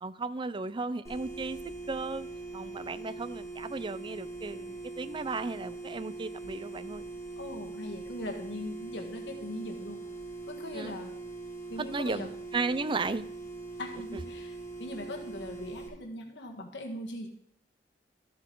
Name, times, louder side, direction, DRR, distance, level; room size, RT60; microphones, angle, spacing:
voice 1, 0.0-1.6 1.9-2.3 2.5-7.0 10.7-11.0 11.9-13.3, right 3 dB, 30° right, 14 dB, 0.5 m, -35 dB
sound 1, 1.0-15.9, right 3 dB, 15° left, 2.5 m, -42 dB
voice 2, 7.4-10.0 10.5-11.1 11.7-12.3 13.8-17.3, left 1 dB, 80° left, 1 dB, 1.5 m, -40 dB
14.0 x 7.5 x 3.9 m, 0.66 s
head